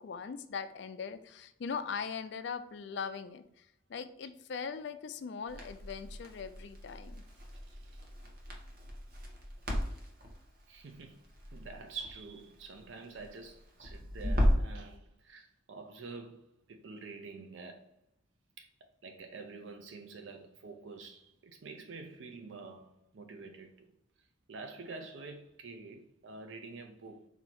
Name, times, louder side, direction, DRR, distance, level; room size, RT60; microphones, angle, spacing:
voice 1, 0.0-7.2, left 6 dB, 60° left, 0.4 m, -40 dB
Crackle, 5.5-14.8, equal, 50° right, 1.0 m, -36 dB
voice 2, 7.6-8.0 10.7-11.2 11.5-17.9 18.6-18.7 19.0-23.9 24.5-27.3, right 4 dB, 70° right, 0.5 m, -47 dB
4.4 x 2.7 x 4.2 m
head